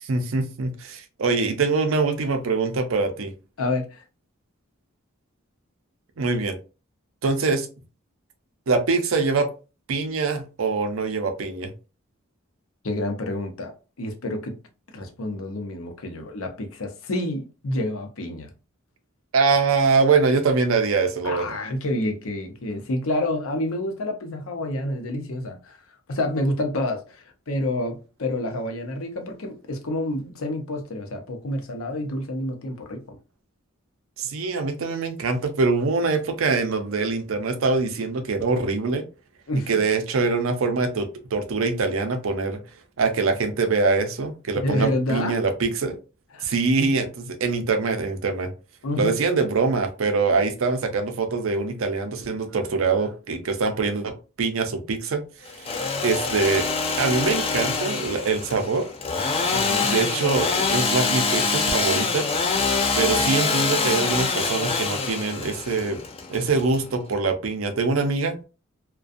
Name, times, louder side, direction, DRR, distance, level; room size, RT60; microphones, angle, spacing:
voice 1, 0.0-3.3 6.2-6.6 7.2-7.7 8.7-9.5 9.9-11.7 19.3-21.5 34.2-39.0 39.7-42.6 43.0-45.9 46.4-48.5 49.0-55.2 55.6-55.7 56.0-56.7 57.0-58.9 59.9-62.3 63.0-66.0 66.3-68.4, right 4 dB, 75° right, 0.5 m, -23 dB
voice 2, 3.6-4.0 12.8-14.6 14.9-18.5 21.2-25.8 26.1-33.2 39.5-39.8 44.5-45.4 46.3-46.4 48.8-49.2 59.5-60.0, left 1 dB, 85° left, 0.6 m, -28 dB
Engine / Sawing, 55.5-67.1, left 4 dB, 30° left, 0.3 m, -25 dB
2.4 x 2.2 x 2.5 m
head